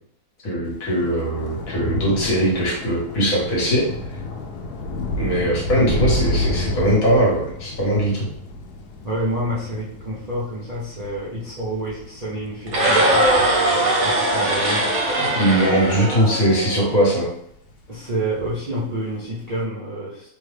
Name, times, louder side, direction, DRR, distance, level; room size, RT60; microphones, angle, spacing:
voice 1, 0.4-3.9 5.2-8.3 15.2-17.3, right 1 dB, 65° left, -4 dB, 1.5 m, -20 dB
Thunder / Rain, 0.8-17.3 17.7-18.1 18.4-18.6, left 1 dB, 85° left, 1.1 m, -31 dB
voice 2, 5.7-6.1 9.0-13.3 13.8-14.9 17.9-20.3, right 1 dB, 40° right, -8 dB, 0.6 m, -28 dB
sound 1, 12.7-16.8, right 1 dB, 60° right, 1.3 m, -20 dB
3.2 x 2.3 x 3.2 m, 0.70 s
omnidirectional pair, 1.6 m